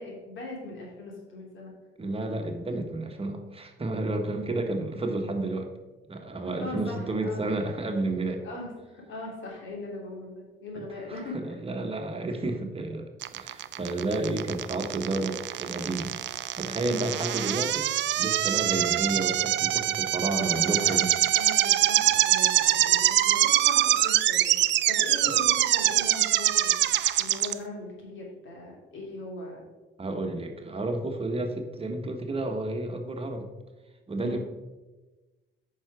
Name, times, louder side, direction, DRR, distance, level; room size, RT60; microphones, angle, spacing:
voice 1, 0.0-1.7 4.6-4.7 6.4-7.4 8.4-11.4 16.8-17.1 20.3-26.9 27.2-29.6 34.2-34.4, left 2 dB, 75° left, -1 dB, 2.9 m, -40 dB
voice 2, 2.0-5.7 6.1-8.4 10.8-10.9 11.3-16.1 16.6-17.9 18.2-21.0 30.0-33.5 34.1-34.4, right 2 dB, 30° right, 4 dB, 1.2 m, -31 dB
sound 1, 13.2-27.5, right 13 dB, 65° right, 0.4 m, -24 dB
8.8 x 5.7 x 4.8 m, 1.2 s
cardioid pair, 90°, 20 cm